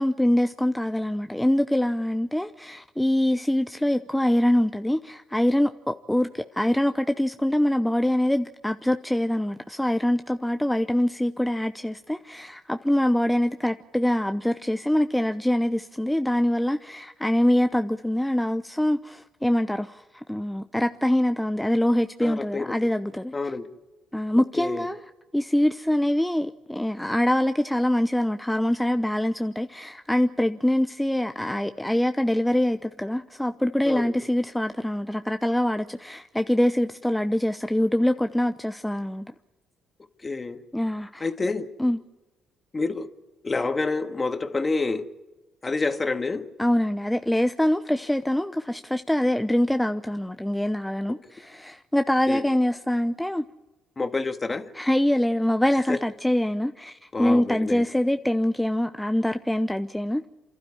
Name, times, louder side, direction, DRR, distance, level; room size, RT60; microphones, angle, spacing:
voice 1, 0.0-23.3 24.1-25.0 25.3-39.2 40.7-41.3 41.8-42.0 46.6-53.4 54.8-60.2, left 1 dB, 5° left, 0.8 m, -24 dB
voice 2, 22.2-22.7 23.3-23.7 24.6-24.9 33.8-34.1 40.2-40.6 41.2-41.7 42.7-43.1 43.4-45.1 45.6-46.5 52.3-52.4 54.0-54.7 55.9-56.0 57.1-57.8, left 3 dB, 30° left, 1.8 m, -28 dB
28.0 x 12.5 x 9.9 m
hypercardioid pair, 60°, 0 cm